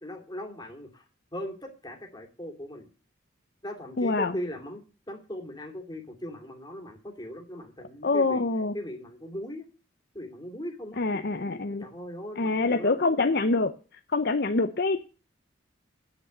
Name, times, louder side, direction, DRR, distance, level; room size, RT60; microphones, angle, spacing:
voice 1, 0.0-1.0 1.3-2.9 3.6-8.5 8.7-9.7 10.1-11.0 11.8-12.9, equal, 20° left, 3 dB, 2.5 m, -39 dB
voice 2, 4.0-4.3 8.0-8.7 11.0-11.8 12.4-13.7 14.1-15.1, left 3 dB, 50° left, 7 dB, 0.7 m, -25 dB
9.5 x 8.3 x 7.9 m, 0.36 s
head